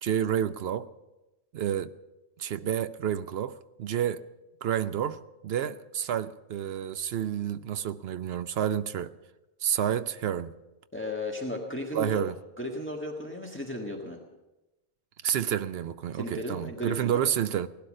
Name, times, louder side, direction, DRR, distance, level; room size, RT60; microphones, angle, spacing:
voice 1, 0.0-0.9 1.5-1.9 2.4-4.2 4.6-9.1 9.6-10.5 11.9-12.4 15.2-17.7, right 10 dB, 75° right, 0.9 m, -29 dB
voice 2, 10.9-12.2 12.6-14.2 16.1-17.2, left 1 dB, 10° left, 1.6 m, -35 dB
17.5 x 12.0 x 6.4 m
omnidirectional pair, 1.1 m